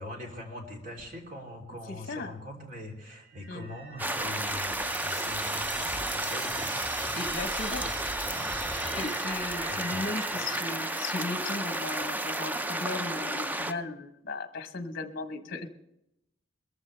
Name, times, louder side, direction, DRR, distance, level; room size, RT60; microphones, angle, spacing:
voice 1, 0.0-7.2 7.7-7.9 8.3-9.0 9.7-10.5, left 1 dB, 45° right, 1 dB, 3.3 m, -43 dB
voice 2, 1.9-2.3 3.5-3.7 7.1-7.9 9.0-15.7, left 3 dB, 50° left, 9 dB, 1.0 m, -36 dB
sound 1, 3.2-12.4, right 2 dB, 90° right, 4.8 m, -42 dB
sound 2, 4.0-13.7, right 1 dB, 10° right, 0.5 m, -32 dB
21.5 x 14.5 x 3.3 m, 0.84 s
head